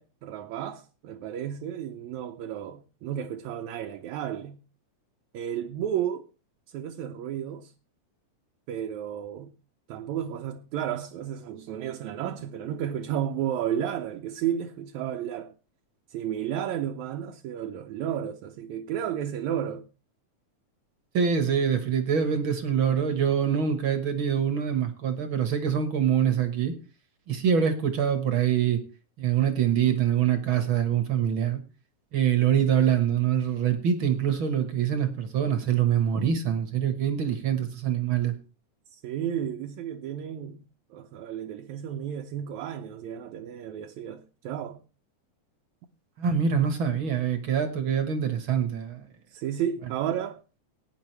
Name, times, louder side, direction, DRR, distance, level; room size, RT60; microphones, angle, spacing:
voice 1, 0.0-4.6 5.3-6.3 6.7-7.7 8.7-9.5 9.9-15.5 16.1-19.8 38.9-40.6 40.9-44.8 49.3-50.4, right 10 dB, 75° right, 2.0 m, -32 dB
voice 2, 21.1-26.7 27.3-28.8 29.2-31.6 32.1-38.3 46.2-49.0, right 8 dB, 50° right, 1.7 m, -25 dB
18.0 x 9.8 x 3.2 m
omnidirectional pair, 3.6 m